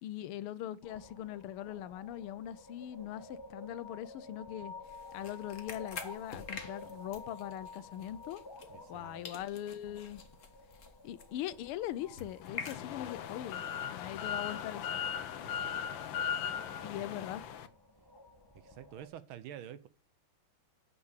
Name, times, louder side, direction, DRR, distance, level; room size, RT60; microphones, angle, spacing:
voice 1, 0.0-4.7 5.1-8.4 8.9-10.2 11.0-13.6 13.9-15.0 16.8-17.4, left 12 dB, 85° left, 1.6 m, -41 dB
sound 1, 0.8-19.1, left 2 dB, 20° left, 0.6 m, -52 dB
sound 2, 4.8-9.0 9.2-13.3, left 5 dB, 40° left, 1.4 m, -48 dB
voice 2, 8.7-9.3 15.4-15.9 16.8-17.3 18.5-19.9, right 10 dB, 75° right, 1.4 m, -49 dB
sound 3, 12.4-17.7, left 8 dB, 70° left, 1.5 m, -38 dB
8.4 x 5.8 x 8.0 m
omnidirectional pair, 2.4 m